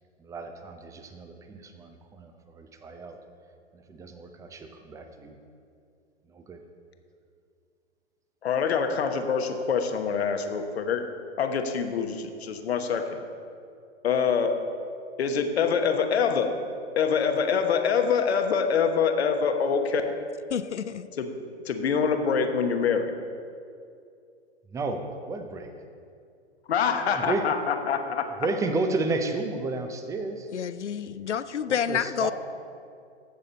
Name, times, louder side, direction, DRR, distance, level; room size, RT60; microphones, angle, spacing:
voice 1, 0.2-3.2 3.7-5.4 6.3-6.6 24.7-25.7 27.0-27.5 28.0-30.5 31.7-32.3, right 3 dB, 10° right, 6 dB, 0.6 m, -32 dB
voice 2, 8.4-11.0 11.4-13.0 14.0-14.5 15.2-16.5 17.0-20.2 21.2-21.3 21.6-23.1 26.7-28.3, left 6 dB, 65° left, 6 dB, 1.2 m, -25 dB
voice 3, 20.5-21.1 30.5-32.3, left 8 dB, 85° left, 14 dB, 0.6 m, -29 dB
15.0 x 6.5 x 4.1 m, 2.4 s
figure-of-eight pair, 115°, 34 cm